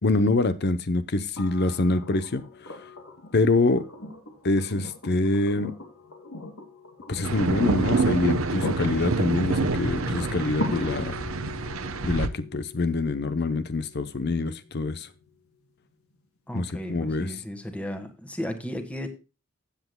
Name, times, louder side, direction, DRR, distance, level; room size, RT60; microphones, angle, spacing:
voice 1, 0.0-2.4 3.3-3.8 4.4-5.7 7.1-11.2 12.0-15.1 16.5-17.3, left 2 dB, 50° left, 0.7 m, -25 dB
sound 1, 1.4-15.3 17.0-17.1, left 2 dB, 85° left, 2.7 m, -40 dB
sound 2, 7.2-12.3, right 3 dB, 75° right, 0.9 m, -27 dB
voice 2, 16.5-19.1, equal, 5° left, 1.6 m, -34 dB
15.0 x 8.1 x 2.2 m
head